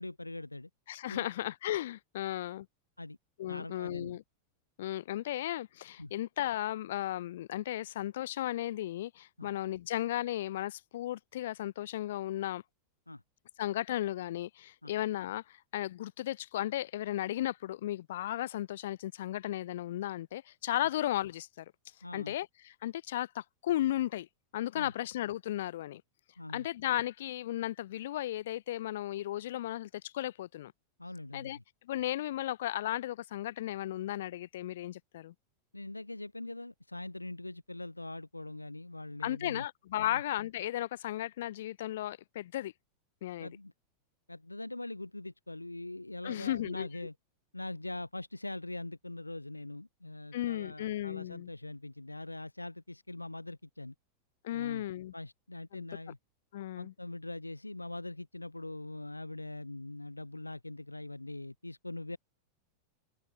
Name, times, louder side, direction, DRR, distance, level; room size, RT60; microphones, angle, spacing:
voice 1, 0.0-0.7 1.1-1.3 3.0-3.2 3.5-4.2 6.0-6.1 9.4-9.5 13.1-13.2 14.8-14.9 22.0-22.3 24.7-24.9 26.4-26.6 31.0-31.5 35.7-39.6 40.0-40.2 43.4-43.7 44.3-47.1 47.5-53.9 54.5-54.8 55.1-56.2 56.7-62.2, left 2 dB, 85° left, 4.7 m, -42 dB
voice 2, 0.9-2.7 3.4-4.2 4.8-12.6 13.6-21.6 22.1-24.3 24.5-26.0 26.5-30.7 31.3-31.6 31.8-35.3 39.2-42.7 43.2-43.5 46.2-46.9 50.3-51.5 54.4-55.1 55.7-55.9 56.5-56.9, left 13 dB, 55° left, 8.0 m, -35 dB
figure-of-eight pair, 90°, 0 cm